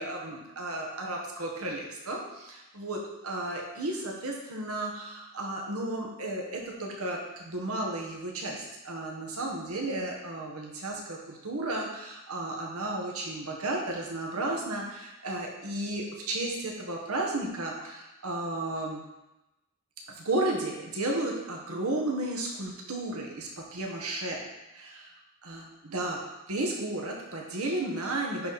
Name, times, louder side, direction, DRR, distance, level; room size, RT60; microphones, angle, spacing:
voice 1, 0.0-19.0 20.1-24.4 24.7-25.1 25.4-26.2 26.5-28.5, right 2 dB, 85° right, -1 dB, 1.5 m, -33 dB
10.0 x 4.3 x 4.2 m, 0.97 s
head